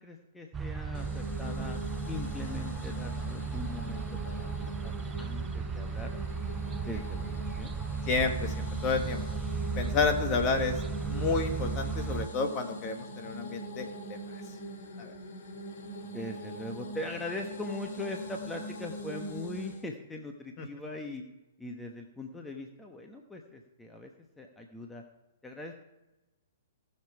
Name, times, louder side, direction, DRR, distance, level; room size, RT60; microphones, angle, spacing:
voice 1, 0.0-4.9 5.2-6.1 6.9-7.7 16.0-21.2 21.6-24.1 24.4-25.0 25.4-25.7, left 2 dB, 10° left, 2 dB, 1.1 m, -41 dB
sound 1, 0.5-12.3, right 5 dB, 20° right, 0.4 m, -35 dB
sound 2, 0.9-19.9, equal, 55° left, 2.5 m, -42 dB
voice 2, 8.1-9.2 9.8-10.8 11.1-13.9 15.0-15.1 20.6-20.7, left 4 dB, 35° left, 4 dB, 1.9 m, -30 dB
18.5 x 6.9 x 4.8 m, 1.0 s
hypercardioid pair, 125°, 0 cm